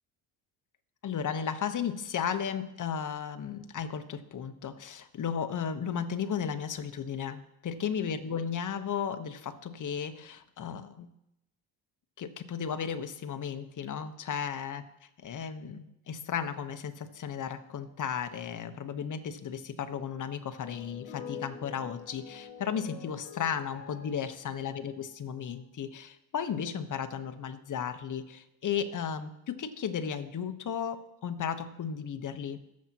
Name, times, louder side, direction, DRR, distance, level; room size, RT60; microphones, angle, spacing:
voice 1, 1.0-11.1 12.2-14.8 15.2-32.6, left 7 dB, 45° left, 8 dB, 1.2 m, -35 dB
sound 1, 20.6-25.6, left 7 dB, 65° left, 1.7 m, -46 dB
19.5 x 7.5 x 3.0 m, 0.83 s
supercardioid pair, 75°, 42 cm